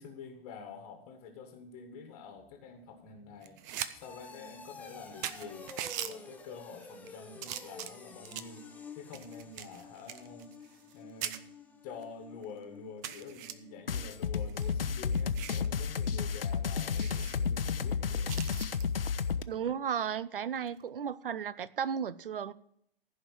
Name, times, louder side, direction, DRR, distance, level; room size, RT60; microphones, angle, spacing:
voice 1, 0.0-8.6 8.9-11.4 11.8-18.3, left 5 dB, 30° left, 1.6 m, -48 dB
sound 1, 2.4-15.1 15.4-15.8 16.2-16.3, left 4 dB, 5° left, 0.8 m, -51 dB
sound 2, 3.4-3.9 4.3-4.4 4.9-5.0 5.2-6.1 6.8-7.1 7.4-8.6 9.1-11.0 11.2-11.4 12.0-12.1 12.4-12.5 13.0-13.5 14.4-15.7 16.0-16.2 16.5-16.6 17.0-17.4 18.3-18.8 20.6-20.8, right 11 dB, 20° right, 0.4 m, -41 dB
sound 3, 13.9-19.4, left 6 dB, 75° left, 0.8 m, -32 dB
voice 2, 19.5-22.5, right 8 dB, 65° right, 0.7 m, -34 dB
15.0 x 5.2 x 7.5 m
figure-of-eight pair, 120°, 29 cm